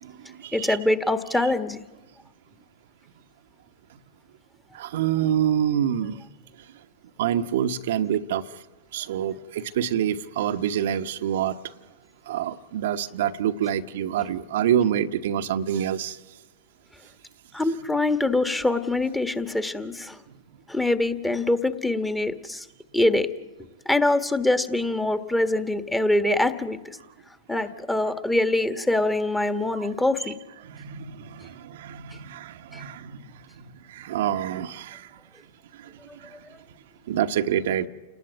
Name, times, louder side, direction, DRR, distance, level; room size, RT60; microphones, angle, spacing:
voice 1, 0.0-0.8 4.7-6.2 7.2-8.4 8.9-11.6 12.3-16.2 29.7-29.9 30.6-33.2 33.9-35.1 36.2-36.3 37.1-37.9, right 10 dB, 65° right, 1.1 m, -26 dB
voice 2, 0.5-1.9 17.5-20.2 20.7-22.6 22.9-23.3 23.8-27.0 27.5-30.4 32.7-32.8, left 2 dB, 5° left, 1.6 m, -24 dB
29.0 x 19.0 x 9.3 m
hypercardioid pair, 100°, 0 cm